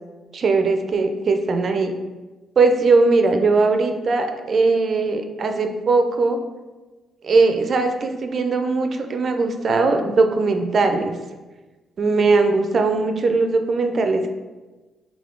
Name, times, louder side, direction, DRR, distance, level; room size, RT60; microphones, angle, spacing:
voice 1, 0.3-1.9 2.6-6.4 7.2-11.1 12.0-14.3, right 3 dB, 50° right, 6 dB, 0.5 m, -19 dB
3.5 x 3.5 x 3.7 m, 1.2 s
cardioid pair, 90°, 0 cm